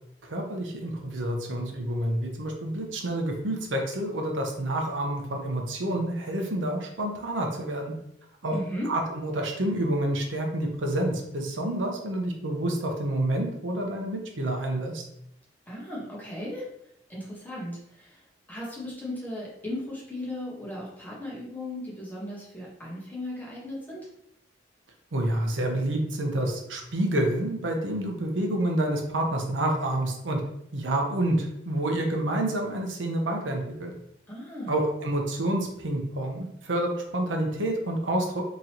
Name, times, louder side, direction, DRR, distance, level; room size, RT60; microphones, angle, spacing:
voice 1, 0.2-7.9 8.4-8.5 8.9-15.0 25.1-30.4 30.7-33.9 34.7-38.4, right 1 dB, 85° right, 2 dB, 0.8 m, -28 dB
voice 2, 8.5-8.9 15.7-16.7 17.1-18.2 18.5-24.1 34.3-34.8, left 1 dB, 10° left, -6 dB, 1.2 m, -36 dB
3.8 x 3.0 x 2.9 m, 0.75 s
head